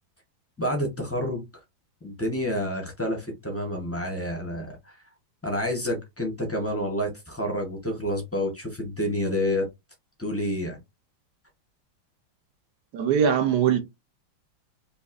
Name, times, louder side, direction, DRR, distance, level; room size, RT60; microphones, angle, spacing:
voice 1, 0.6-1.4 2.0-4.9 5.4-9.7 10.2-10.8, equal, 15° left, 0.5 m, -29 dB
voice 2, 12.9-13.8, right 8 dB, 65° right, 1.1 m, -21 dB
5.1 x 2.7 x 2.5 m
omnidirectional pair, 2.1 m